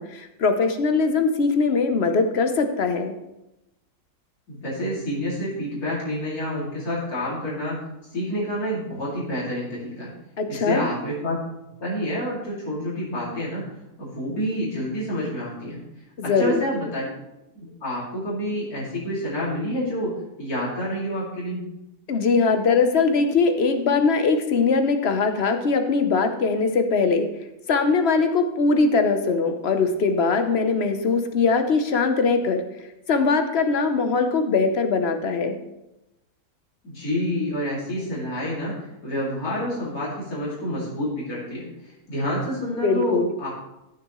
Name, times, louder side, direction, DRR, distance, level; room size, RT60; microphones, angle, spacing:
voice 1, 0.0-3.1 10.4-10.9 16.2-16.6 22.1-27.3 27.7-32.6 33.1-35.6 42.8-43.3, left 4 dB, 50° left, 7 dB, 0.9 m, -21 dB
voice 2, 4.5-7.8 8.1-10.1 10.5-11.4 11.8-15.8 16.2-17.1 17.6-21.6 36.8-43.5, left 1 dB, 70° left, -7 dB, 3.0 m, -28 dB
14.0 x 6.6 x 3.0 m, 0.92 s
omnidirectional pair, 1.6 m